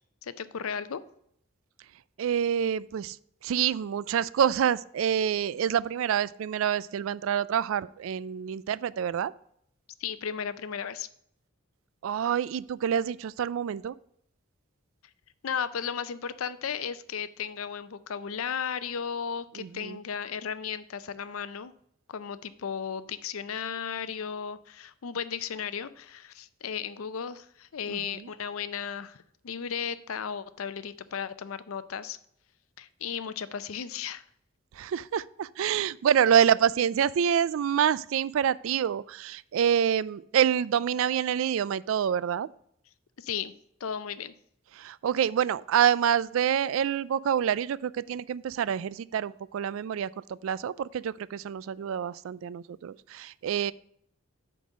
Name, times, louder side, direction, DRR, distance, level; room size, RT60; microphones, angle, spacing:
voice 1, 0.2-1.0 10.0-11.1 15.4-21.7 22.1-29.2 29.4-32.2 32.8-34.2 43.2-43.5 43.8-44.3, left 7 dB, 85° left, 14 dB, 0.5 m, -35 dB
voice 2, 2.2-3.2 3.4-9.3 12.0-14.0 19.6-20.0 27.9-28.3 34.8-42.5 44.8-53.7, right 8 dB, 75° right, 19 dB, 0.3 m, -27 dB
8.4 x 4.0 x 6.2 m, 0.69 s
head